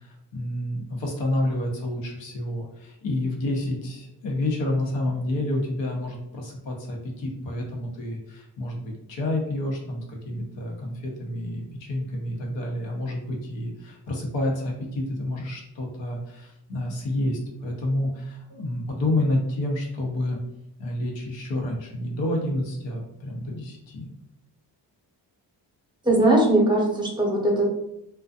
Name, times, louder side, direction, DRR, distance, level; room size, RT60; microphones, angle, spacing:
voice 1, 0.0-20.4 20.8-24.1, left 1 dB, 75° left, -1 dB, 0.8 m, -29 dB
voice 2, 26.0-27.7, right 1 dB, 10° right, -1 dB, 0.8 m, -20 dB
2.4 x 2.2 x 2.4 m, 0.82 s
cardioid pair, 60°, 45 cm